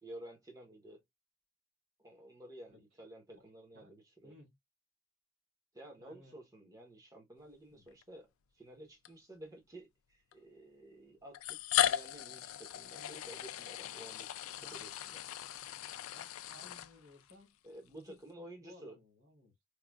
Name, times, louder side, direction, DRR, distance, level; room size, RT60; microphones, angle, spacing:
voice 1, 0.0-1.0 2.0-4.3 5.7-15.2 17.6-18.9, right 1 dB, 15° right, 1.0 m, -52 dB
voice 2, 4.2-4.5 6.0-6.4 7.7-7.8 14.6-14.8 16.1-17.6 17.9-19.5, left 1 dB, 45° right, 3.1 m, -59 dB
sound 1, 7.9-8.0 9.1-9.2 10.3-10.4 11.3-17.3, left 12 dB, 65° left, 0.3 m, -37 dB
4.7 x 2.4 x 2.3 m
head